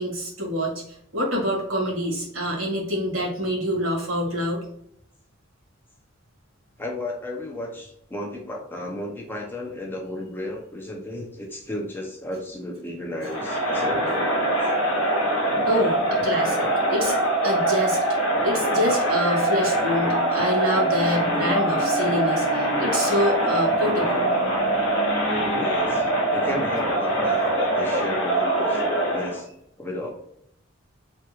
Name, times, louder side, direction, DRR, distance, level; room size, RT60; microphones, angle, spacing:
voice 1, 0.0-4.6 15.6-17.1 17.4-18.0 18.4-24.2, equal, 80° right, -3 dB, 1.4 m, -26 dB
voice 2, 6.8-14.7 25.3-28.8 29.1-29.5 29.8-30.1, left 1 dB, 10° left, -1 dB, 0.4 m, -33 dB
Crowd, 13.2-29.4, right 1 dB, 85° left, 0.8 m, -23 dB
3.4 x 2.3 x 2.9 m, 0.73 s
head